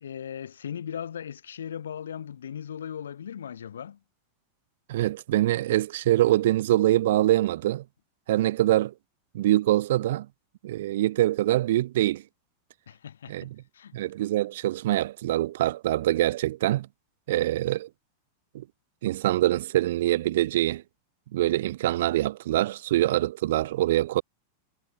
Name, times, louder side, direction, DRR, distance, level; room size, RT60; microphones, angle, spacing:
voice 1, 0.0-4.0 12.9-14.0, left 8 dB, 65° left, 0.5 m, -38 dB
voice 2, 4.9-7.8 8.3-8.9 9.3-10.3 10.6-12.2 13.3-13.5 13.9-16.9 17.3-17.9 18.5-18.6 19.0-20.8 21.3-24.2, right 14 dB, 55° right, 0.3 m, -24 dB
figure-of-eight pair, 90°, 0 cm